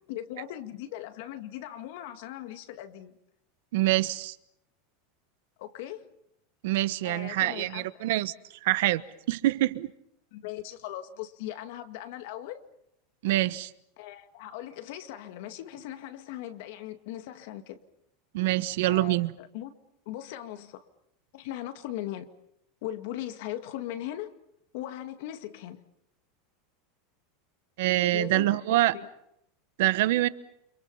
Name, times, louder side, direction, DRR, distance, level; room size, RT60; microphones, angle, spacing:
voice 1, 0.1-3.2 5.6-6.1 7.0-8.0 10.3-12.6 14.0-17.8 18.9-19.8 20.1-20.8 21.3-22.3 22.8-24.3 24.7-25.8 28.1-29.1, left 13 dB, 55° left, 2.1 m, -39 dB
voice 2, 3.7-4.3 6.6-8.3 8.6-9.9 13.2-13.7 18.3-19.3 27.8-28.9 29.8-30.3, right 16 dB, 60° right, 1.1 m, -25 dB
29.5 x 27.0 x 5.6 m
supercardioid pair, 175°, 0 cm